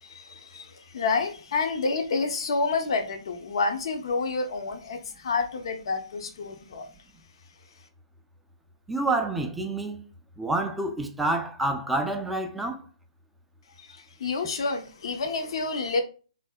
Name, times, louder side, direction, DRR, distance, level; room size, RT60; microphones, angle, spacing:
voice 1, 0.0-6.9 13.8-16.0, left 4 dB, 50° left, 0.6 m, -29 dB
voice 2, 8.9-10.0 10.4-12.8, right 2 dB, 5° right, 0.4 m, -28 dB
3.2 x 2.7 x 2.2 m
figure-of-eight pair, 135°, 3 cm